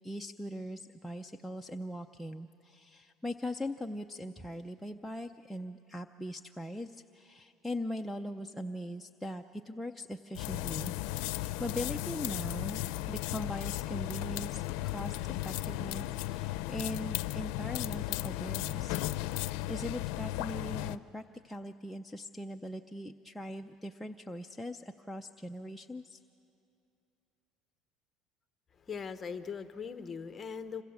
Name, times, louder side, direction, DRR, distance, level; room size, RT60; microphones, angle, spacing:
voice 1, 0.0-10.9 11.3-19.0 19.7-26.2, left 1 dB, ahead, 2 dB, 0.5 m, -40 dB
sound 1, 10.3-21.0, left 17 dB, 80° left, 0.5 m, -35 dB
voice 2, 28.9-30.8, left 6 dB, 20° left, 10 dB, 1.0 m, -40 dB
26.5 x 26.0 x 7.1 m, 2.7 s
cardioid pair, 150°, 0 cm